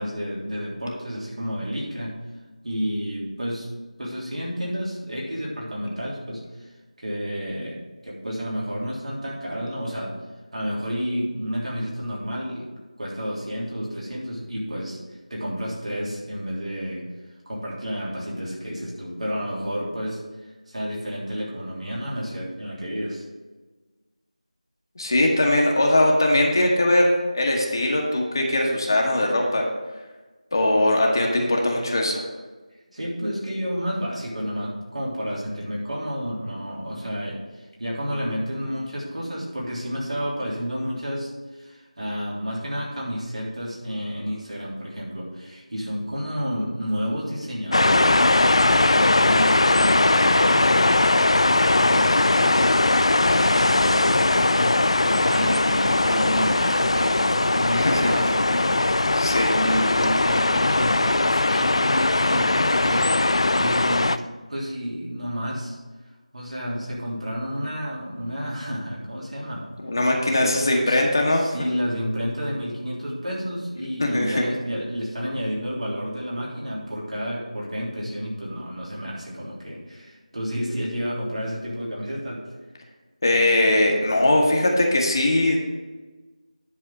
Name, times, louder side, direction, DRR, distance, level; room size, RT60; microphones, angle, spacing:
voice 1, 0.0-2.1 2.6-3.7 4.0-6.7 7.0-10.1 10.5-12.7 13.0-15.0 15.3-17.0 17.4-20.2 20.7-23.2 32.9-37.4 37.8-51.1 51.4-64.1 64.5-65.8 66.3-69.6 70.4-70.6 70.8-71.0 71.3-82.4, equal, 60° right, -5 dB, 3.4 m, -30 dB
voice 2, 25.0-29.7 30.5-32.2 57.7-58.2 59.2-59.5 69.8-71.4 74.0-74.5 83.2-85.6, left 1 dB, 35° left, 0 dB, 1.2 m, -20 dB
sound 1, 47.7-64.2, left 2 dB, 50° left, 0.4 m, -20 dB
10.0 x 4.2 x 6.7 m, 1.2 s
figure-of-eight pair, 175°, 4 cm